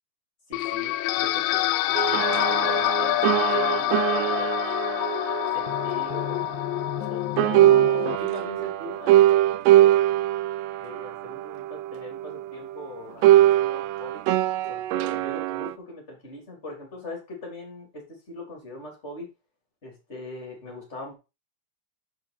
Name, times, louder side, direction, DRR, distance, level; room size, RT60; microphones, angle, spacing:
sound 1, 0.5-8.2, left 16 dB, 85° left, 2.7 m, -26 dB
voice 1, 0.5-4.6 5.5-6.5 7.1-10.1 10.8-14.2 14.7-19.3 19.8-21.2, left 1 dB, 20° left, 0 dB, 2.6 m, -41 dB
sound 2, 1.9-7.1 7.4-12.8 13.2-15.7, right 14 dB, 85° right, 2.4 m, -22 dB
7.6 x 7.5 x 4.1 m, 0.28 s
omnidirectional pair, 5.1 m